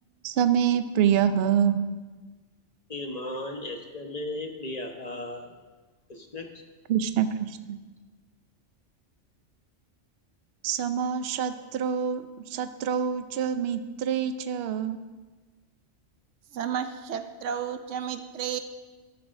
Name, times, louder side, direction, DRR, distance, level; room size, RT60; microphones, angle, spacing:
voice 1, 0.2-1.9 6.9-7.8 10.6-15.0, right 8 dB, 65° right, 10 dB, 0.8 m, -26 dB
voice 2, 2.9-5.5 6.1-6.5, left 1 dB, 35° left, 3 dB, 1.1 m, -36 dB
voice 3, 16.5-18.6, right 8 dB, 90° right, 8 dB, 1.0 m, -32 dB
14.0 x 12.5 x 2.5 m, 1.3 s
omnidirectional pair, 1.2 m